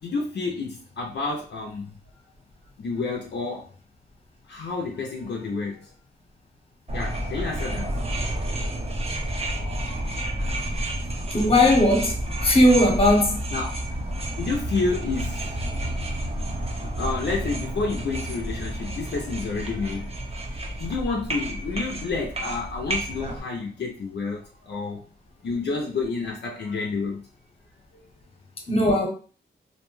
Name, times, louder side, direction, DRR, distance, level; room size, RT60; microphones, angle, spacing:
voice 1, 0.0-1.9 2.8-3.7 4.5-5.9 6.9-8.8 13.5-13.7 14.4-15.6 16.8-20.2 20.8-25.0 25.4-27.2 27.9-28.1, left 4 dB, 65° left, -1 dB, 0.5 m, -30 dB
sound 1, 6.9-23.4, right 1 dB, 30° right, 0.7 m, -30 dB
voice 2, 11.3-12.1 12.4-13.4 28.7-29.1, left 1 dB, 30° left, 1 dB, 0.9 m, -18 dB
2.6 x 2.1 x 3.1 m, 0.39 s
cardioid pair, 80°, 19 cm